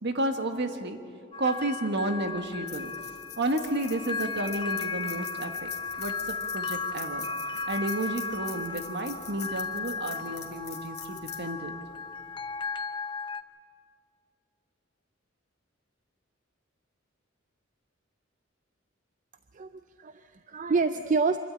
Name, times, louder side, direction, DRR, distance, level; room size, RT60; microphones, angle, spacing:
voice 1, 0.0-1.0 1.4-2.9 3.4-5.7 6.0-7.3 7.7-11.7, right 1 dB, 60° right, 6 dB, 1.6 m, -31 dB
sound 1, 1.3-13.4, left 4 dB, 25° left, 0.6 m, -35 dB
sound 2, 2.1-12.6, left 11 dB, 55° left, 2.4 m, -46 dB
voice 2, 19.5-21.4, right 4 dB, 40° right, 10 dB, 0.5 m, -28 dB
25.5 x 12.5 x 8.9 m, 2.3 s
head